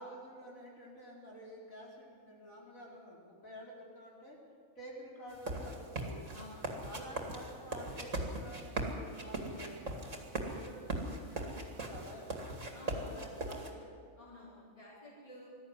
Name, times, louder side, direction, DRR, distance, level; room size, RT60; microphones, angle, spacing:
voice 1, 0.0-4.4 4.8-6.3 6.8-10.0 10.5-12.6 13.0-13.9, equal, 70° left, -4 dB, 4.8 m, -50 dB
sound 1, 5.3-13.7, right 1 dB, 60° right, 2.8 m, -39 dB
voice 2, 6.3-6.9 12.7-13.3 14.2-15.5, left 1 dB, 25° left, -7 dB, 4.5 m, -52 dB
20.0 x 13.5 x 9.8 m, 2.2 s
omnidirectional pair, 1.5 m